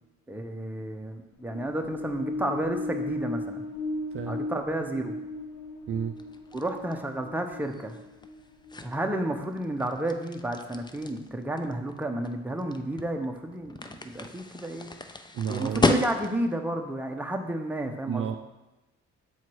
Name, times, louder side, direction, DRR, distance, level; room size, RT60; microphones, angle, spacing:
voice 1, 0.3-3.6 4.3-5.1 6.5-8.0 8.8-14.9 15.5-18.4, right 1 dB, 5° right, 3 dB, 0.8 m, -31 dB
sound 1, 1.3-9.0, left 2 dB, 80° left, 0.8 m, -37 dB
sound 2, 6.2-16.6, left 2 dB, 15° left, 0.4 m, -34 dB
voice 2, 15.3-15.9 18.1-18.4, right 8 dB, 45° right, 6 dB, 0.4 m, -31 dB
7.2 x 4.6 x 4.6 m, 1.0 s
cardioid pair, 90°, 30 cm